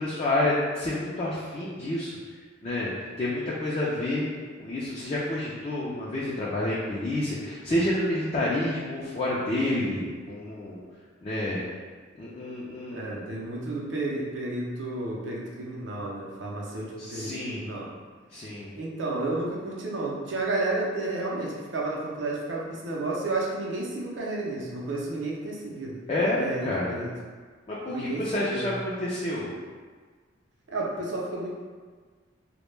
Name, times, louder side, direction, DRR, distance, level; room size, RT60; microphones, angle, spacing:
voice 1, 0.0-2.1 2.6-2.9 3.2-4.2 4.6-10.8 11.2-11.6 12.2-13.3 17.0-17.6 18.3-18.7 26.1-27.0 27.7-29.5, left 1 dB, 30° left, -7 dB, 0.3 m, -29 dB
voice 2, 12.9-17.9 18.8-26.0 26.4-27.1 27.9-28.7 30.7-31.5, right 2 dB, 70° right, -3 dB, 0.5 m, -32 dB
2.1 x 2.1 x 3.1 m, 1.5 s
head